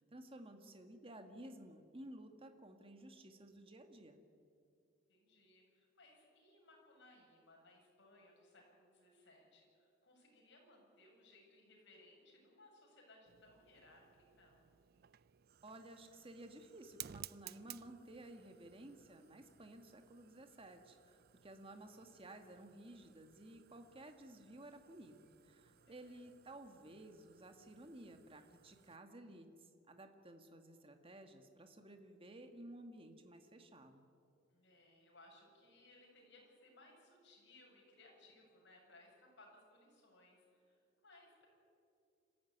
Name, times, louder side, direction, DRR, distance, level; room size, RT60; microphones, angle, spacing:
voice 1, 0.1-4.2 15.6-34.0, right 1 dB, 30° right, 6 dB, 1.9 m, -55 dB
voice 2, 5.1-14.1 14.4-14.6 25.7-26.2 34.5-41.5, left 2 dB, 65° left, 0 dB, 7.3 m, -64 dB
Fire, 13.3-29.0, right 12 dB, 55° right, 0.5 m, -59 dB
27.0 x 15.0 x 9.5 m, 2.4 s
head